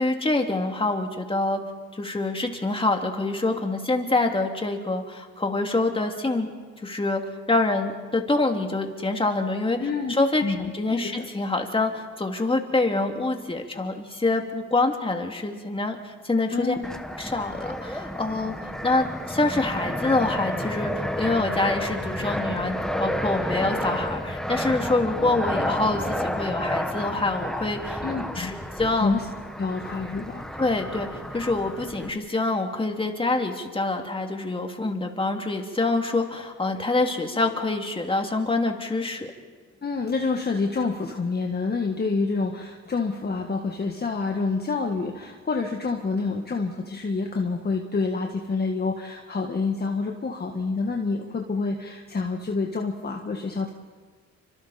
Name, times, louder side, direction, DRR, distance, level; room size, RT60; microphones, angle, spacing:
voice 1, 0.0-1.6 1.9-6.5 6.8-7.2 7.5-9.8 10.1-16.8 17.2-18.6 18.8-28.0 28.3-29.1 30.6-39.3, left 2 dB, 20° left, 3 dB, 2.8 m, -26 dB
voice 2, 9.8-10.1 10.4-10.7 11.2-11.3 16.5-16.8 28.0-28.5 28.9-29.2 29.6-30.4 39.8-53.7, left 4 dB, 35° left, 2 dB, 1.8 m, -27 dB
Fixed-wing aircraft airplane, 16.8-32.1, equal, ahead, 1.5 m, -31 dB
29.0 x 25.5 x 4.4 m, 1.5 s
cardioid pair, 90°, 30 cm